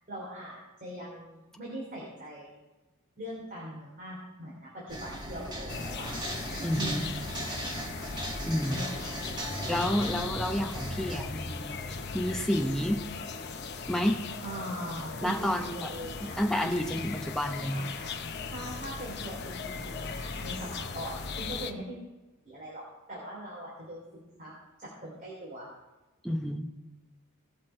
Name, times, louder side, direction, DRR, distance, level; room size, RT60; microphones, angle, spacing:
voice 1, 0.1-2.5 3.2-6.1 6.7-7.1 8.7-9.1 14.4-16.4 17.7-18.1 18.5-22.0 22.4-24.5 24.8-25.7, right 1 dB, 40° right, -6 dB, 3.1 m, -41 dB
sound 1, 4.9-11.2, right 1 dB, 20° right, 1.3 m, -37 dB
sound 2, 5.7-21.7, left 4 dB, 50° left, 0.7 m, -38 dB
voice 2, 6.6-7.0 8.4-8.9 9.7-11.8 12.1-13.0 13.9-14.2 15.2-15.9 16.2-17.8 26.2-26.7, equal, ahead, 2 dB, 0.8 m, -30 dB
18.0 x 6.1 x 4.4 m, 1.1 s
head